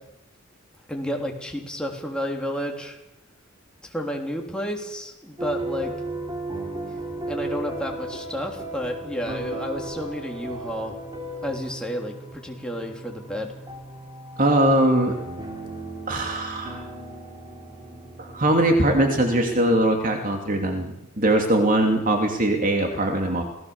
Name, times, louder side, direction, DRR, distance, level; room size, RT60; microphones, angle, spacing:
voice 1, 0.9-3.0 3.8-5.9 7.3-11.0 11.4-13.5, equal, 5° left, 0 dB, 3.5 m, -31 dB
sound 1, 5.4-20.0, right 2 dB, 20° right, 3.6 m, -35 dB
voice 2, 14.4-15.2 16.1-16.9 18.2-23.4, right 1 dB, 40° right, 3 dB, 2.7 m, -21 dB
27.5 x 17.5 x 7.2 m, 0.92 s
head